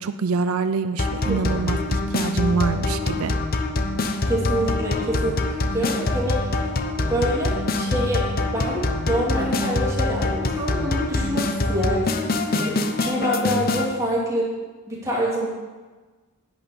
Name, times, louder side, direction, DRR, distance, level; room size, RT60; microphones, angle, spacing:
voice 1, 0.0-3.4, right 5 dB, 85° right, 11 dB, 0.5 m, -25 dB
sound 1, 1.0-13.9, left 2 dB, 45° left, 0.8 m, -24 dB
voice 2, 4.2-6.5 7.0-8.3 8.5-12.2 12.5-14.5 14.9-15.5, equal, 15° right, -6 dB, 3.2 m, -26 dB
11.0 x 6.0 x 8.8 m, 1.3 s
head